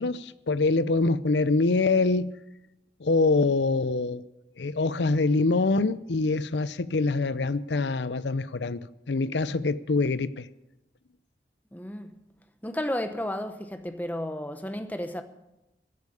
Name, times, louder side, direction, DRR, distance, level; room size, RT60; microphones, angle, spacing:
voice 1, 0.0-2.3 3.0-4.2 4.6-8.8 9.1-10.5, left 3 dB, 85° left, 0.6 m, -24 dB
voice 2, 11.7-12.1 12.6-15.2, left 1 dB, 10° left, 0.9 m, -32 dB
15.0 x 8.3 x 8.5 m
head